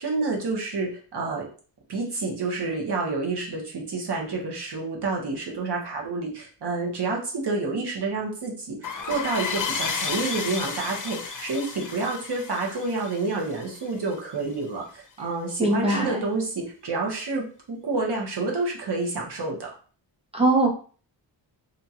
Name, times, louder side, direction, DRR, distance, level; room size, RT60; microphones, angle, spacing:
voice 1, 0.0-1.5 1.9-8.8 9.0-19.7, right 3 dB, 60° right, -1 dB, 1.1 m, -29 dB
sound 1, 8.8-14.1, left 5 dB, 45° left, 0.6 m, -32 dB
voice 2, 15.6-16.2 20.3-20.7, right 2 dB, 15° right, -2 dB, 0.7 m, -21 dB
2.7 x 2.3 x 2.8 m, 0.40 s
cardioid pair, 65°, 46 cm